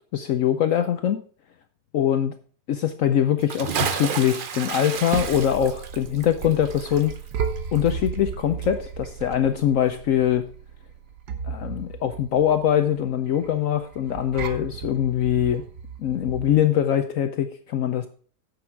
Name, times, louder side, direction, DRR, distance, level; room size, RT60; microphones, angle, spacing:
voice 1, 0.1-1.2 1.9-2.3 2.7-7.1 7.7-10.5 11.5-15.6 16.0-18.1, left 10 dB, 65° left, 9 dB, 1.0 m, -23 dB
Bathtub (filling or washing) / Splash splatter, 3.4-8.4 8.6-8.7, right 6 dB, 50° right, 0.6 m, -31 dB
sound 1, 4.7-16.6, right 7 dB, 85° right, 1.5 m, -35 dB
9.7 x 7.0 x 4.6 m, 0.43 s
omnidirectional pair, 1.7 m